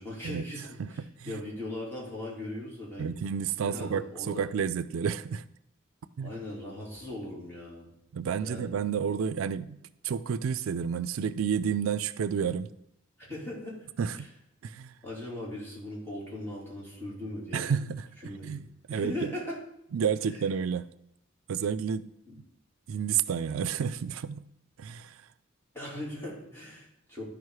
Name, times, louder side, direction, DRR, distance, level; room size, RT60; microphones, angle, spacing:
voice 1, 0.0-3.2 3.6-4.4 6.2-7.9 8.4-8.7 13.2-13.9 14.1-14.3 15.0-17.7 18.2-18.5 18.9-19.6 20.3-20.4 22.3-22.4 25.7-27.2, left 1 dB, 10° left, 2.9 m, -39 dB
voice 2, 3.0-5.4 6.2-6.3 8.1-9.8 10.0-12.7 14.0-14.3 14.6-14.9 17.5-19.3 19.9-20.9 21.5-22.1 22.9-24.5 24.8-25.2, right 7 dB, 85° right, 0.4 m, -30 dB
12.5 x 5.1 x 4.7 m
head